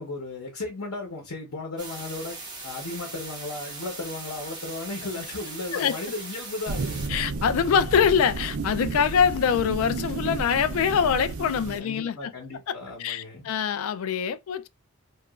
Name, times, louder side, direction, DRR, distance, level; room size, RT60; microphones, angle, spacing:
voice 1, 0.0-2.4 2.6-7.0 9.0-9.2 11.8-13.5, left 2 dB, 90° left, 0.9 m, -35 dB
sound 1, 1.8-7.1, right 3 dB, 20° right, 0.8 m, -39 dB
sound 2, 6.7-11.8, right 3 dB, 70° right, 0.4 m, -32 dB
voice 2, 7.1-12.3 12.7-14.7, left 7 dB, 70° left, 0.3 m, -24 dB
2.9 x 2.3 x 2.3 m
head